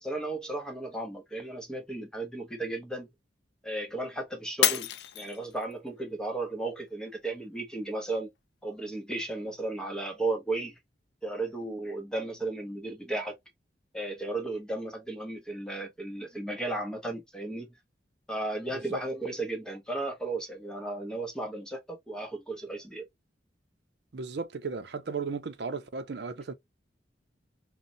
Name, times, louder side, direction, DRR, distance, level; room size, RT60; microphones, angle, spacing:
voice 1, 0.0-3.1 3.6-4.9 5.1-8.3 8.6-10.8 11.2-13.3 13.9-17.7 18.3-23.0, right 2 dB, 5° left, 0.7 m, -34 dB
Shatter, 4.6-5.9 6.4-6.9 7.4-7.5, left 11 dB, 65° left, 0.3 m, -28 dB
voice 2, 24.1-26.5, right 4 dB, 65° right, 0.5 m, -35 dB
3.9 x 2.1 x 2.6 m
head